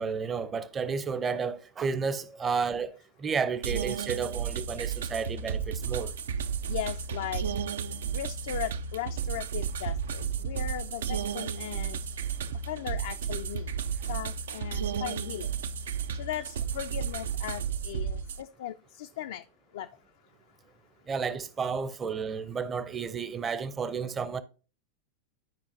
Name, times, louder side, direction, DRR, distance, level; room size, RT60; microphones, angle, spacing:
voice 1, 0.0-2.9 3.2-6.1 21.1-24.4, right 5 dB, 20° right, 0.6 m, -32 dB
sound 1, 3.6-18.4, right 7 dB, 60° right, 0.4 m, -33 dB
voice 2, 6.7-7.4 8.1-12.0 12.7-13.7 14.1-15.5 16.1-19.4 19.7-19.9, left 11 dB, 55° left, 0.3 m, -37 dB
12.0 x 5.0 x 2.6 m
figure-of-eight pair, 90°, 0 cm